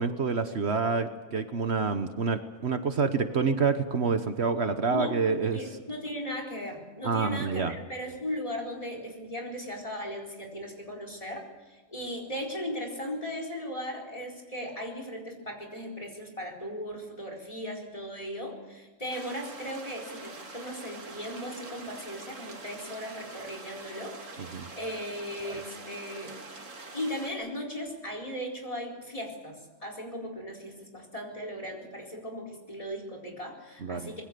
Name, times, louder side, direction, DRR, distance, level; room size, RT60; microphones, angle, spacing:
voice 1, 0.0-5.6 7.0-7.7 24.5-24.7 25.4-25.6 33.8-34.1, right 5 dB, 60° right, 8 dB, 1.3 m, -28 dB
voice 2, 5.5-26.3 26.9-34.2, equal, 25° left, 2 dB, 4.4 m, -37 dB
sound 1, 19.1-27.3, right 3 dB, 85° right, 2.5 m, -45 dB
25.0 x 21.5 x 6.8 m, 1.2 s
omnidirectional pair, 1.3 m